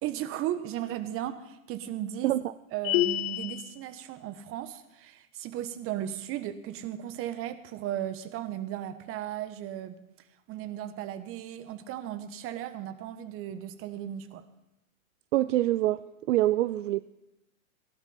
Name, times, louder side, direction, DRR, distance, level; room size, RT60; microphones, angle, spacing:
voice 1, 0.0-2.4 2.7-10.0 10.5-14.4, right 11 dB, 30° right, 12 dB, 1.3 m, -36 dB
sound 1, 2.8-3.7, left 16 dB, 40° left, 0.8 m, -27 dB
voice 2, 15.3-17.0, right 15 dB, 60° right, 16 dB, 0.6 m, -26 dB
16.5 x 11.0 x 5.9 m, 0.91 s
hypercardioid pair, 115°, 42 cm